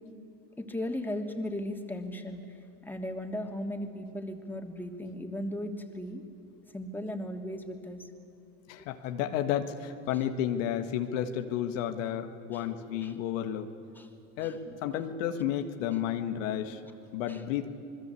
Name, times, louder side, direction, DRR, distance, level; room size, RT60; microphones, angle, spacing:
voice 1, 0.6-2.4 2.9-6.2 6.7-8.0 11.4-11.5 12.5-12.6 13.0-13.1 14.0-14.1 17.3-17.4, left 1 dB, 5° left, 3 dB, 3.0 m, -36 dB
voice 2, 8.7-13.7 14.4-16.8 17.1-17.7, left 10 dB, 85° left, 6 dB, 1.8 m, -32 dB
27.5 x 20.5 x 8.5 m, 2.8 s
supercardioid pair, 95°, 38 cm